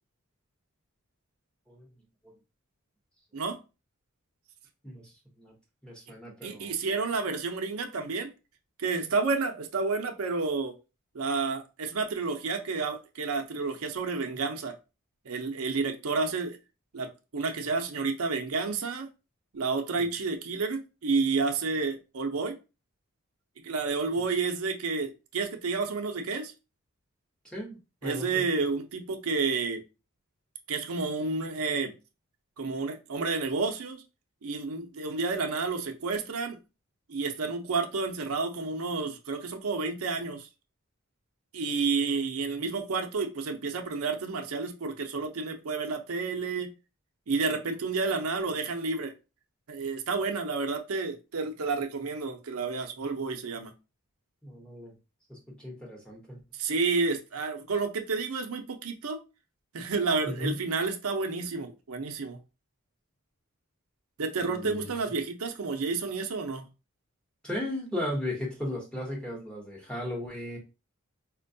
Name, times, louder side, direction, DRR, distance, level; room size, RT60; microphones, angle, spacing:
voice 1, 4.8-5.5 5.8-6.8 24.2-24.3 27.4-28.4 54.4-54.9 55.3-56.4 60.2-60.6 64.4-64.9 67.4-70.6, left 1 dB, 5° left, 0.9 m, -36 dB
voice 2, 6.4-8.3 8.8-10.7 11.1-14.7 15.2-16.6 16.9-19.1 19.5-22.6 23.6-26.5 28.0-29.8 30.7-31.9 32.6-34.0 34.4-36.6 37.1-40.5 41.5-46.7 47.3-49.1 49.7-53.7 56.5-59.2 59.7-62.4 64.2-66.7, right 4 dB, 85° right, 0.6 m, -30 dB
4.3 x 2.2 x 2.6 m
head